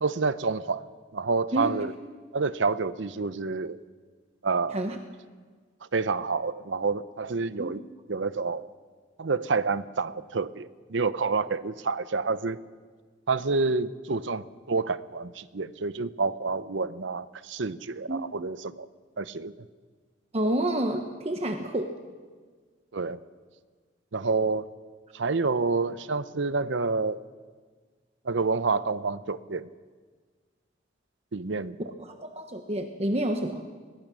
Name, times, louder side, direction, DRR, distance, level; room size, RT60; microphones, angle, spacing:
voice 1, 0.0-0.9 1.1-1.9 2.3-3.8 4.4-4.8 5.9-7.8 8.1-8.7 9.2-12.6 13.3-18.9 19.2-19.7 22.9-23.2 24.1-24.7 25.1-27.2 28.2-29.7 31.3-31.8, right 4 dB, 70° right, 15 dB, 0.7 m, -28 dB
voice 2, 20.3-21.9 32.0-33.6, right 1 dB, 35° right, 5 dB, 1.1 m, -29 dB
21.0 x 21.0 x 6.3 m, 1.5 s
head